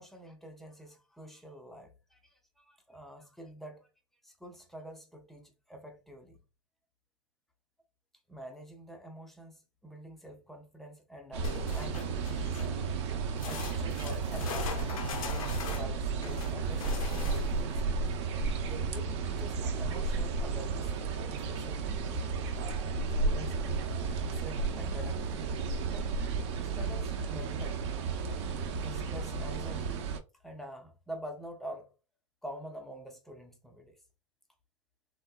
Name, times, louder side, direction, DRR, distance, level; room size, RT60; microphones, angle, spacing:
voice 1, 0.0-3.9 4.2-6.4 8.3-12.8 13.4-14.7 15.7-17.8 18.6-20.9 21.3-22.0 23.2-23.9 24.2-25.5 25.9-26.1 26.6-27.9 28.8-30.1 30.4-31.9 32.4-34.0, equal, ahead, 0.4 m, -47 dB
sound 1, 11.3-30.2, right 4 dB, 55° right, 0.5 m, -33 dB
sound 2, 11.4-12.8 13.4-17.7 21.0-21.1 21.4-21.5 22.2-22.3, left 7 dB, 85° left, 0.6 m, -41 dB
3.7 x 2.2 x 2.2 m
supercardioid pair, 145°, 17 cm